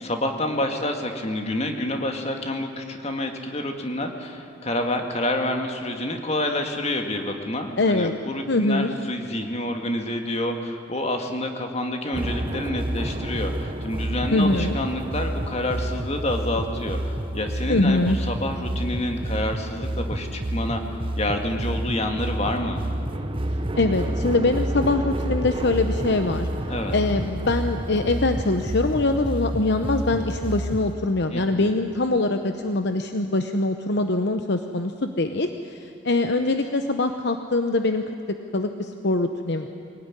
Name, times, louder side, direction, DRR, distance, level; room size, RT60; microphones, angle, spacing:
voice 1, 0.0-20.8 21.2-22.8 26.7-27.0 31.3-31.7, left 1 dB, 30° left, 4 dB, 2.1 m, -28 dB
voice 2, 7.8-8.1 8.5-8.9 14.3-14.8 17.7-18.2 23.8-26.5 26.9-38.0 38.5-39.7, left 2 dB, 55° left, 7 dB, 0.9 m, -23 dB
sound 1, 12.1-30.9, right 1 dB, 25° right, 0.8 m, -29 dB
23.5 x 18.5 x 9.8 m, 2.7 s
head